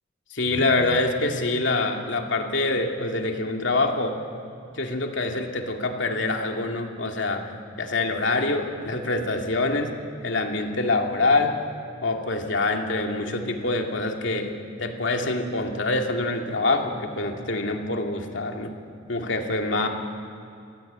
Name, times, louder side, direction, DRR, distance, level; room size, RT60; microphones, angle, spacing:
voice 1, 0.3-4.2 4.7-7.4 7.8-9.9 10.2-11.6 12.0-14.5 14.8-18.7 19.1-19.9, left 2 dB, 75° left, 2 dB, 2.4 m, -25 dB
25.0 x 16.5 x 8.8 m, 2.5 s
head